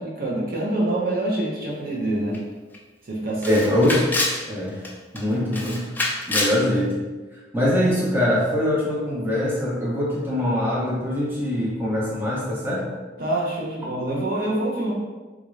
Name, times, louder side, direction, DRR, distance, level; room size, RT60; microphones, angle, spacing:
voice 1, 0.0-2.4 3.0-3.5 13.2-14.9, right 1 dB, 50° right, -3 dB, 0.7 m, -26 dB
Camera, 2.3-2.4 2.7-2.8 3.4-4.4 4.8-5.2 5.5-6.6, left 2 dB, 10° left, 0.3 m, -26 dB
voice 2, 3.5-4.1 4.5-4.9 5.1-6.0 6.3-7.0 7.5-12.9, left 1 dB, 10° right, -6 dB, 0.7 m, -23 dB
3.6 x 2.4 x 3.1 m, 1.3 s
head